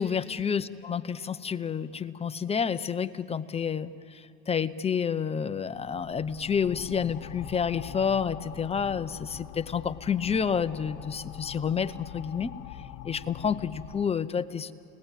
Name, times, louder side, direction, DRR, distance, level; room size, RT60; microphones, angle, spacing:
voice 1, 0.0-12.5 13.0-14.7, left 7 dB, 15° left, 12 dB, 0.7 m, -29 dB
sound 1, 5.7-14.1, left 11 dB, 45° left, 1.4 m, -44 dB
30.0 x 18.5 x 9.1 m, 3.0 s
supercardioid pair, 110°, 37 cm